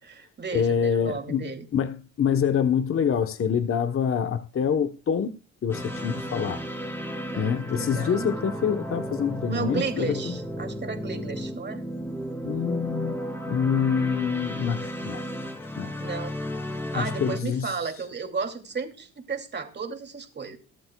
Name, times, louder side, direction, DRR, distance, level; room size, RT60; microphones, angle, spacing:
voice 1, 0.0-1.6 7.3-8.4 9.5-11.8 16.0-16.4 16.7-20.6, right 5 dB, 35° right, 2.7 m, -34 dB
voice 2, 0.5-5.3 5.6-6.6 7.3-10.4 12.4-13.1 13.5-15.2 15.8-15.9 16.9-17.7, left 7 dB, 45° left, 1.1 m, -26 dB
sound 1, 5.7-17.4, equal, 10° left, 2.9 m, -34 dB
23.5 x 8.2 x 2.3 m
cardioid pair, 90°, 30 cm